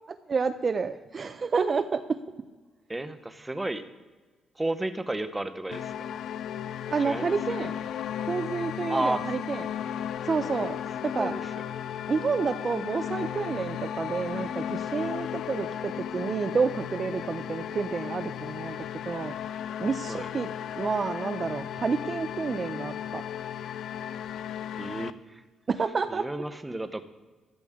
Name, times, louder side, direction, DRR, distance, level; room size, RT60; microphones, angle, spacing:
voice 1, 0.1-2.2 6.9-7.7 8.3-9.6 10.2-11.3 12.1-18.8 19.1-19.3 19.8-20.5 20.8-23.2 25.7-26.3, right 5 dB, 40° right, 10 dB, 0.5 m, -29 dB
voice 2, 2.9-3.8 4.5-6.1 7.0-7.4 8.9-9.3 11.2-11.6 20.1-20.3 24.8-25.4 26.1-27.0, right 2 dB, 15° right, 10 dB, 0.9 m, -32 dB
sound 1, 5.7-25.1, left 9 dB, 75° left, 0.4 m, -35 dB
14.0 x 9.9 x 3.6 m, 1.3 s
cardioid pair, 90°, 0 cm